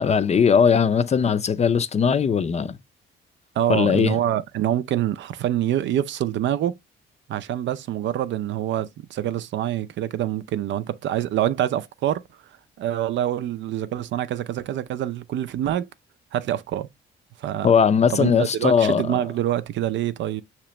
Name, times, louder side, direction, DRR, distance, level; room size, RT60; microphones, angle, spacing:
voice 1, 0.0-2.8 3.7-4.2 17.6-19.2, left 6 dB, 35° left, 0.5 m, -19 dB
voice 2, 3.6-6.7 7.3-12.2 12.8-15.9 16.3-16.9 17.4-17.7 18.1-20.4, right 11 dB, 70° right, 0.4 m, -25 dB
5.9 x 2.9 x 3.0 m
cardioid pair, 90°, 20 cm